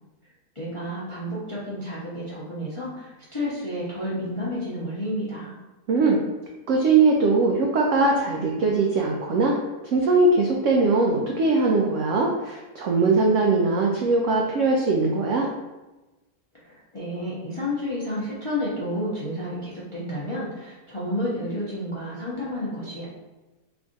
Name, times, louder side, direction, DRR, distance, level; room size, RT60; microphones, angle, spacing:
voice 1, 0.5-5.5 16.5-23.1, left 1 dB, 35° left, -8 dB, 0.5 m, -31 dB
voice 2, 5.9-6.2 6.7-9.6 9.8-15.5, right 3 dB, 80° right, -1 dB, 0.6 m, -21 dB
3.4 x 2.4 x 3.8 m, 1.1 s
omnidirectional pair, 1.8 m